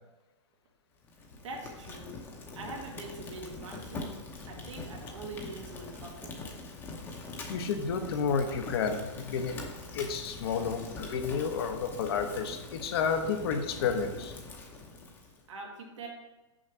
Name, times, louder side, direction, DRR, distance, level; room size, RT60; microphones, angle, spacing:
Fire, 1.0-15.4, left 3 dB, 15° left, 0.8 m, -43 dB
voice 1, 1.4-2.2 2.6-4.1 4.5-6.3 15.5-16.1, right 3 dB, 85° right, 0 dB, 1.9 m, -43 dB
voice 2, 7.5-9.6 9.9-14.3, left 6 dB, 55° left, 6 dB, 0.9 m, -31 dB
6.3 x 5.2 x 4.5 m, 1.1 s
hypercardioid pair, 160°, 16 cm